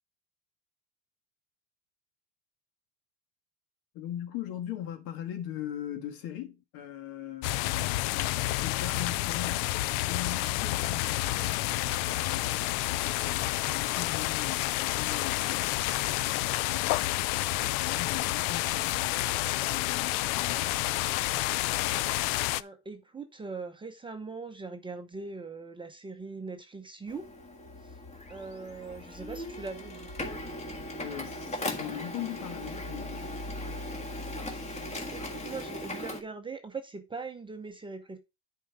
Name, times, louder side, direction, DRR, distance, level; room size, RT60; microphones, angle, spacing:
voice 1, 3.9-20.8 31.0-33.4, left 11 dB, 60° left, 2.2 m, -41 dB
sound 1, 7.4-22.6, left 17 dB, 85° left, 0.6 m, -29 dB
voice 2, 22.4-27.3 27.8-28.0 28.3-30.3 34.9-38.2, right 4 dB, 10° right, 0.8 m, -41 dB
Printer, 27.1-36.2, left 1 dB, 15° left, 1.7 m, -38 dB
10.0 x 4.6 x 4.9 m
cardioid pair, 155°, 39 cm